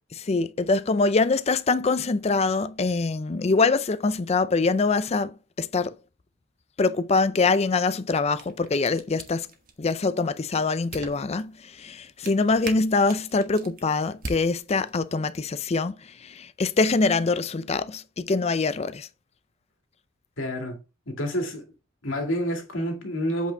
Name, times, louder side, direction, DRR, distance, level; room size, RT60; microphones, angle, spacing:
voice 1, 0.1-5.9 6.8-9.5 9.8-19.1, left 3 dB, 35° left, 0.5 m, -24 dB
sound 1, 8.1-15.2, right 3 dB, 45° right, 1.4 m, -44 dB
voice 2, 20.4-20.8 21.1-21.6 22.0-23.5, equal, 80° left, 2.2 m, -28 dB
8.3 x 4.8 x 3.4 m
head